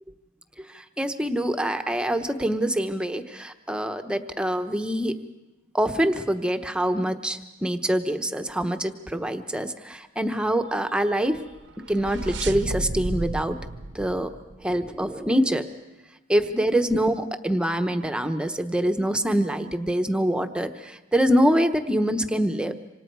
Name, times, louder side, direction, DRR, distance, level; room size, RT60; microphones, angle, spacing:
voice 1, 0.6-5.2 5.7-11.4 11.9-13.6 13.9-14.3 14.6-15.7 16.3-22.7, equal, 5° right, 7 dB, 1.0 m, -25 dB
sound 1, 11.5-15.1, right 2 dB, 60° right, 0.9 m, -33 dB
27.0 x 26.0 x 4.7 m, 1.1 s
head